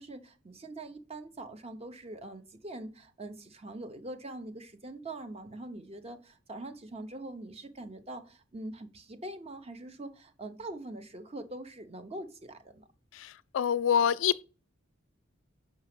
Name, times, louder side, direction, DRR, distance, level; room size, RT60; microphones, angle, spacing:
voice 1, 0.0-12.9, right 2 dB, 30° right, 0.8 m, -43 dB
voice 2, 13.1-14.4, left 8 dB, 85° left, 0.3 m, -27 dB
5.7 x 4.7 x 5.9 m
head